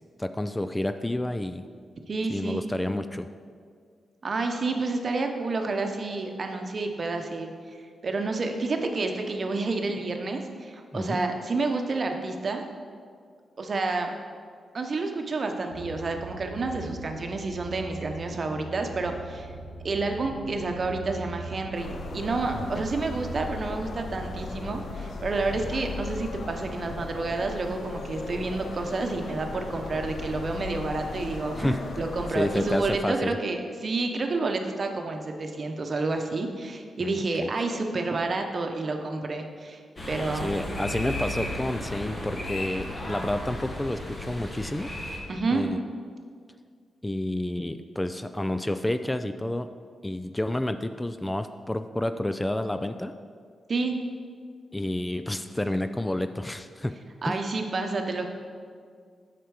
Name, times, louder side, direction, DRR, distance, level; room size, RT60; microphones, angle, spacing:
voice 1, 0.2-1.6 2.3-3.3 10.9-11.2 22.8-22.9 31.6-31.9 32.3-33.4 37.0-37.5 40.3-44.9 45.5-45.8 47.0-49.7 50.0-53.1 54.7-56.9 57.2-57.4, left 1 dB, 15° left, 9 dB, 0.3 m, -29 dB
voice 2, 2.1-2.7 4.2-7.5 8.0-12.6 13.6-14.1 14.7-19.5 19.8-39.8 40.1-40.6 45.3-45.6 53.7-54.0 57.2-58.3, right 3 dB, 50° right, 4 dB, 0.9 m, -29 dB
sound 1, 15.7-28.7 29.0-29.6, right 3 dB, 90° left, 1.4 m, -42 dB
sound 2, 21.7-33.0, left 4 dB, 70° left, 0.8 m, -37 dB
sound 3, 40.0-45.2, left 1 dB, 40° left, 1.9 m, -34 dB
8.0 x 5.9 x 4.8 m, 2.1 s
cardioid pair, 65°, 0 cm